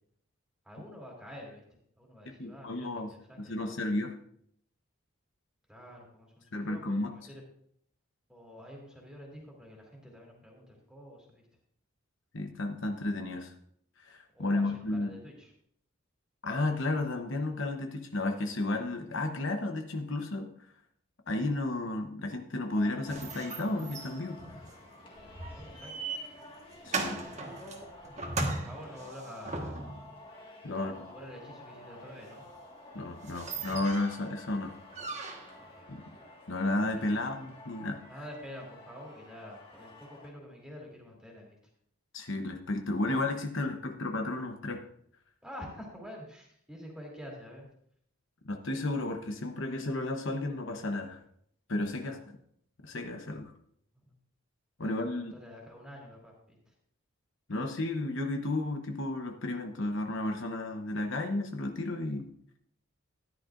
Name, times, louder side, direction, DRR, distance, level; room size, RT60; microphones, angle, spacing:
voice 1, 0.6-1.6 2.0-3.8 5.7-7.4 8.3-11.5 14.3-15.5 25.2-25.9 26.8-27.8 28.4-29.8 30.7-32.4 34.6-34.7 35.6-36.2 36.9-37.2 38.1-41.6 45.4-47.7 52.0-52.2 53.9-54.1 54.8-56.7, equal, 5° right, -1 dB, 2.9 m, -48 dB
voice 2, 2.4-4.1 6.5-7.1 12.3-13.5 14.0-15.1 16.4-20.5 21.3-24.6 26.8-27.2 30.6-30.9 32.9-34.8 35.9-36.0 36.5-38.0 42.1-44.8 48.4-51.2 51.7-52.2 52.8-53.5 54.8-55.3 57.5-62.3, left 2 dB, 60° left, 5 dB, 0.9 m, -33 dB
Singing, 22.8-40.3, left 1 dB, 25° left, 1.7 m, -51 dB
sound 1, 23.1-30.1 32.5-32.6 32.9-33.0 33.2-34.3 34.9-35.7, right 3 dB, 35° right, 1.4 m, -38 dB
14.0 x 11.0 x 2.5 m, 0.68 s
head